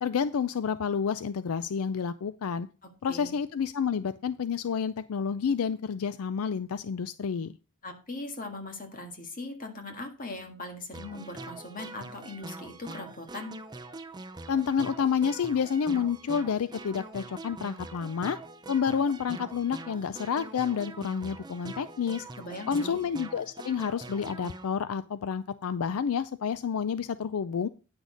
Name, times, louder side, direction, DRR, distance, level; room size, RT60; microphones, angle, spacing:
voice 1, 0.0-2.7 3.0-7.6 14.5-18.4 18.7-22.3 22.7-27.7, left 6 dB, 75° left, 15 dB, 0.4 m, -29 dB
voice 2, 2.8-3.4 7.8-13.5 22.4-23.0, left 2 dB, 40° left, 4 dB, 1.8 m, -40 dB
sound 1, 10.9-24.7, right 2 dB, 20° right, 0.6 m, -43 dB
9.7 x 6.2 x 5.1 m, 0.34 s
head